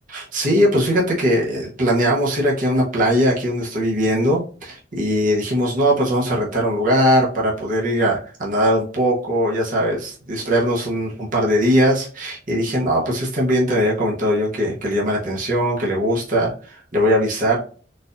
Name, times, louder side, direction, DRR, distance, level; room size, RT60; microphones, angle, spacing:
voice 1, 0.1-17.6, equal, 45° right, -4 dB, 0.9 m, -20 dB
4.0 x 2.5 x 2.5 m, 0.41 s
head